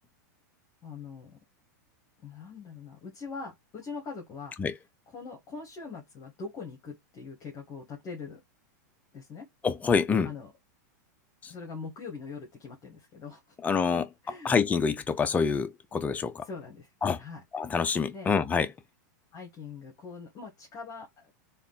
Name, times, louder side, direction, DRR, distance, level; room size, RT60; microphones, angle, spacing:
voice 1, 0.8-1.4 2.2-4.5 5.1-8.4 9.1-9.5 10.2-10.5 11.5-13.6 13.9-14.5 16.4-16.9 17.2-17.4 18.1-18.3 19.3-21.3, left 4 dB, 35° left, 1.3 m, -42 dB
voice 2, 9.6-10.3 11.4-11.5 13.6-14.0 14.4-16.5 17.0-17.2 17.5-18.7, left 5 dB, 15° left, 0.5 m, -26 dB
3.5 x 2.5 x 3.9 m
hypercardioid pair, 130°, 10 cm